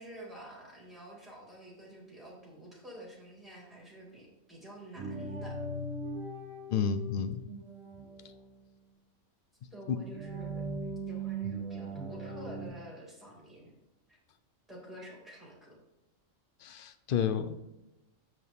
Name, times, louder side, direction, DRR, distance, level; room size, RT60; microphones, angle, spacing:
voice 1, 0.0-5.6 9.7-10.6 11.1-13.7 14.1-14.2 14.7-15.8, right 1 dB, ahead, -3 dB, 2.2 m, -49 dB
sound 1, 5.0-8.5 10.0-12.7, right 2 dB, 70° right, 1.6 m, -39 dB
voice 2, 6.7-7.4 9.9-10.0 16.6-17.6, left 7 dB, 65° left, 10 dB, 0.5 m, -30 dB
7.3 x 6.1 x 3.5 m, 0.94 s
omnidirectional pair, 1.4 m